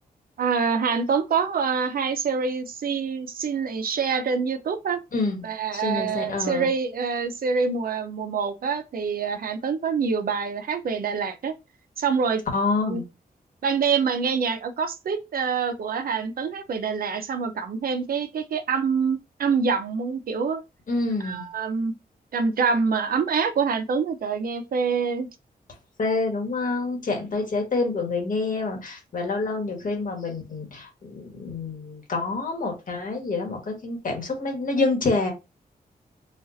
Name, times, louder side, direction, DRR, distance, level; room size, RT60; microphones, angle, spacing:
voice 1, 0.4-5.0 5.4-11.5 12.0-12.4 12.8-13.0 13.6-20.6 21.2-21.9 22.3-25.3, right 5 dB, 65° right, 0.6 m, -26 dB
voice 2, 5.1-6.7 12.5-13.0 20.9-21.5 26.0-35.3, left 3 dB, 55° left, 1.3 m, -27 dB
4.4 x 2.4 x 2.5 m
wide cardioid pair, 105°, 16 cm